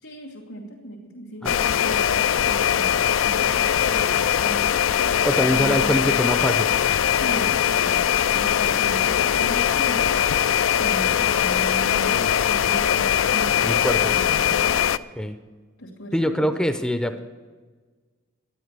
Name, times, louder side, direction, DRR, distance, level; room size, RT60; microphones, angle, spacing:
voice 1, 0.0-6.2 7.1-10.4 10.8-14.8 15.8-16.6, right 1 dB, 90° left, -5 dB, 2.6 m, -37 dB
sound 1, 1.5-15.0, left 9 dB, 70° left, 0.4 m, -21 dB
voice 2, 5.2-6.7 13.6-14.1 15.2-15.4 16.1-17.2, equal, 5° left, 8 dB, 0.5 m, -23 dB
12.5 x 10.0 x 6.7 m, 1.4 s
head